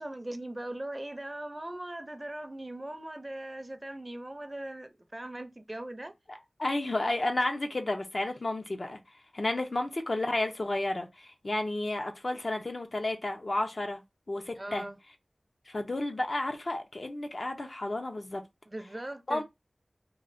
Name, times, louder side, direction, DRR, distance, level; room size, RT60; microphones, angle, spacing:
voice 1, 0.0-6.1 14.6-15.0 18.7-19.4, right 1 dB, 30° right, 0.5 m, -40 dB
voice 2, 6.3-9.0 9.3-14.0 14.3-14.8 15.7-18.4 19.3-19.4, left 2 dB, 60° left, 0.6 m, -32 dB
3.1 x 2.4 x 2.5 m
wide cardioid pair, 50°, 0 cm